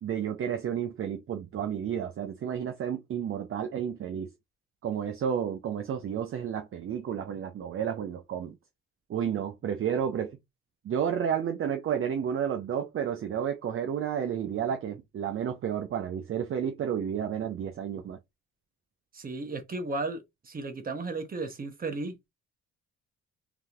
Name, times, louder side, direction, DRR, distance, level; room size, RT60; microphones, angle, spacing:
voice 1, 0.0-4.3 4.8-8.5 9.1-10.4 10.8-18.2, right 8 dB, 45° right, 0.6 m, -31 dB
voice 2, 19.1-22.2, right 3 dB, 30° right, 0.9 m, -34 dB
3.4 x 2.8 x 2.4 m
cardioid pair, 90°, 30 cm